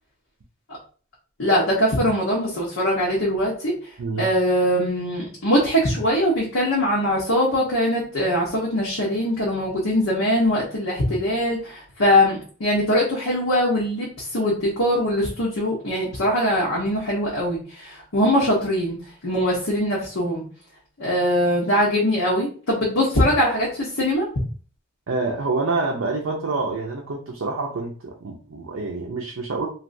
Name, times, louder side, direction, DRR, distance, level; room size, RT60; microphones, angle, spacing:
voice 1, 1.4-3.7 4.2-19.0 19.2-20.4 21.0-24.3, equal, 75° left, -5 dB, 1.0 m, -22 dB
voice 2, 25.1-29.7, right 3 dB, 65° right, -1 dB, 0.5 m, -27 dB
3.2 x 2.6 x 2.6 m, 0.40 s
head